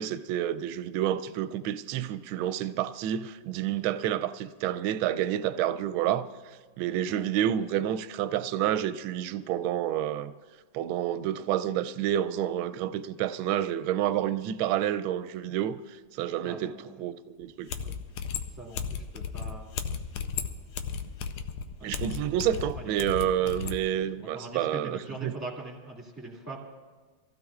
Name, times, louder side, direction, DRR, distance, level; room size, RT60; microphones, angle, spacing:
voice 1, 0.0-6.3 6.8-10.3 10.7-15.8 16.1-16.7 17.0-17.7 21.8-25.3, right 11 dB, 75° right, 12 dB, 1.3 m, -29 dB
voice 2, 16.4-17.0 18.2-19.7 21.8-22.0 22.7-22.9 23.4-23.5 23.8-26.6, right 2 dB, 10° right, -2 dB, 2.0 m, -42 dB
sound 1, 17.4-17.5 17.7-23.8, left 6 dB, 90° left, 1.6 m, -35 dB
25.5 x 15.5 x 2.4 m, 1.4 s
omnidirectional pair, 2.4 m